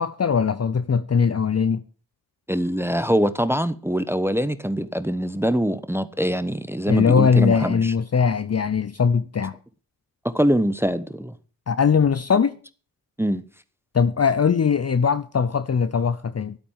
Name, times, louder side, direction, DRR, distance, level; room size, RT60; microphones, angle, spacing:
voice 1, 0.0-1.8 6.9-9.6 11.7-12.6 13.9-16.6, left 6 dB, 40° left, 0.8 m, -20 dB
voice 2, 2.5-7.9 10.2-11.3 13.2-13.4, equal, 5° right, 1.1 m, -23 dB
12.0 x 8.5 x 7.4 m
cardioid pair, 50°, 41 cm